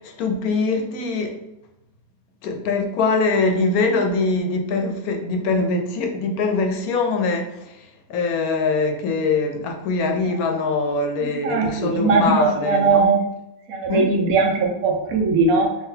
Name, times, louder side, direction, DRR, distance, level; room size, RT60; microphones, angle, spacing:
voice 1, 0.0-1.4 2.4-7.8 8.1-13.1 13.9-14.1, left 3 dB, 90° left, 1.2 m, -23 dB
voice 2, 11.2-13.3 13.7-15.9, right 4 dB, 75° right, 1.2 m, -20 dB
3.8 x 3.3 x 2.7 m
omnidirectional pair, 1.5 m